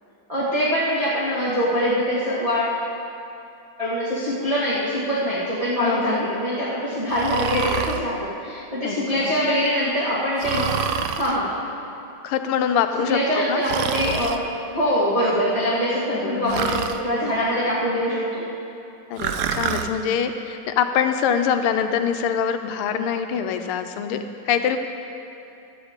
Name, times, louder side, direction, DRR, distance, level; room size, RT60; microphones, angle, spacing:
voice 1, 0.3-2.8 3.8-10.8 11.2-11.5 13.1-14.4 14.7-18.5, equal, 15° right, -9 dB, 1.8 m, -23 dB
voice 2, 5.8-6.3 8.8-9.3 12.2-13.6 16.1-16.8 19.1-24.8, left 8 dB, 85° left, 8 dB, 1.6 m, -24 dB
Breathing, 7.1-8.0 10.4-11.3 13.6-14.4 16.5-17.0 19.2-19.9, right 8 dB, 80° right, 0.8 m, -27 dB
15.5 x 11.5 x 3.7 m, 2.7 s
omnidirectional pair, 2.4 m